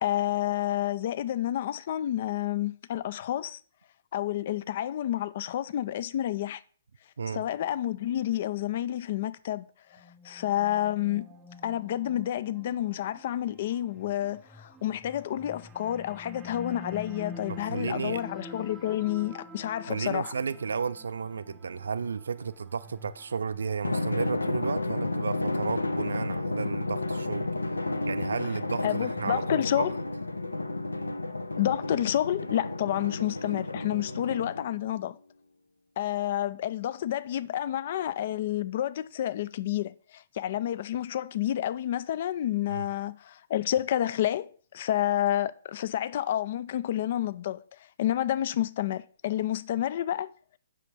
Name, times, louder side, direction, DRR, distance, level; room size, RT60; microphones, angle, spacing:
voice 1, 0.0-3.6 4.1-6.6 7.3-11.3 11.6-20.3 28.8-29.9 31.6-35.2 36.0-47.6 48.0-50.3, left 12 dB, 45° left, 0.4 m, -29 dB
sound 1, 9.9-25.3, left 2 dB, 10° right, 0.7 m, -47 dB
voice 2, 17.5-18.2 19.9-27.5 28.0-29.9 42.7-42.9, right 5 dB, 65° right, 0.4 m, -33 dB
Drum, 23.8-34.8, left 2 dB, 80° left, 0.7 m, -32 dB
7.8 x 6.0 x 4.8 m
figure-of-eight pair, 125°, 0 cm